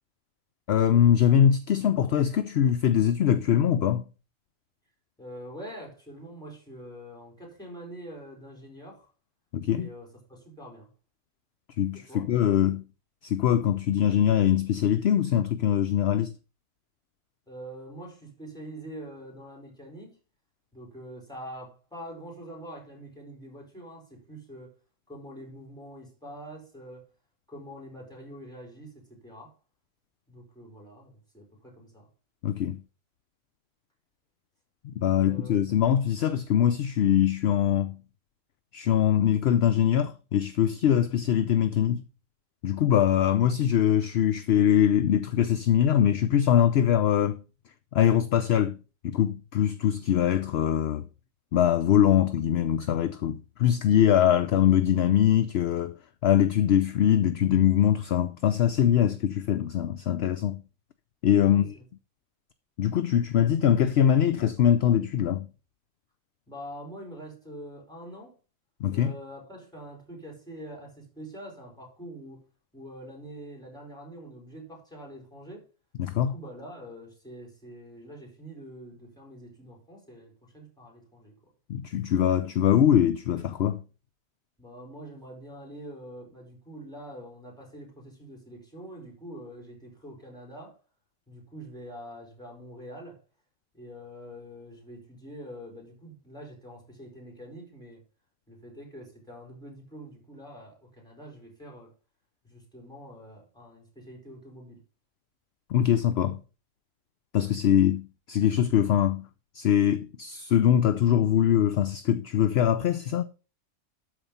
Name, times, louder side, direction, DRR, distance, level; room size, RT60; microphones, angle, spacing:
voice 1, 0.7-4.0 9.5-9.9 11.8-12.8 13.2-16.3 32.4-32.8 34.8-38.0 38.7-42.0 42.6-47.4 47.9-48.8 49.0-51.1 51.5-55.9 56.2-60.6 61.2-61.7 62.8-65.5 68.8-69.1 76.0-76.3 81.7-83.8 105.7-106.4 107.3-109.3 109.5-113.2, left 10 dB, 60° left, 0.8 m, -23 dB
voice 2, 5.2-9.1 9.7-10.9 11.9-12.3 17.5-20.2 20.7-24.7 25.1-27.1 27.5-29.5 30.3-32.1 35.1-35.7 61.4-61.8 66.5-68.3 68.9-72.4 72.7-75.7 76.1-81.4 84.6-90.8 91.3-93.2 93.7-98.0 98.5-101.9 102.4-104.8, equal, 5° left, 5.0 m, -45 dB
13.0 x 5.0 x 5.4 m
omnidirectional pair, 1.4 m